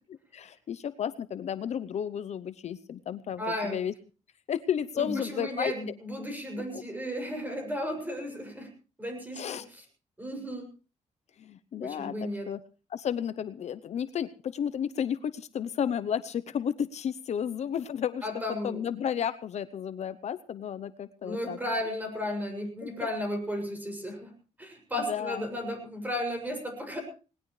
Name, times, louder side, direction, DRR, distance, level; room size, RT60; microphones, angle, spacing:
voice 1, 0.3-3.9 4.5-5.7 6.7-6.8 9.3-9.6 11.4-12.6 12.9-18.3 18.6-21.6 22.8-23.1 24.9-25.4, left 8 dB, 60° left, 13 dB, 0.8 m, -32 dB
voice 2, 3.4-3.8 5.0-8.7 9.0-9.8 10.2-10.6 11.8-12.5 18.2-18.8 21.2-24.3 24.6-27.0, left 1 dB, 15° right, 4 dB, 6.8 m, -34 dB
19.5 x 19.5 x 3.3 m, 0.36 s
cardioid pair, 125°, 13 cm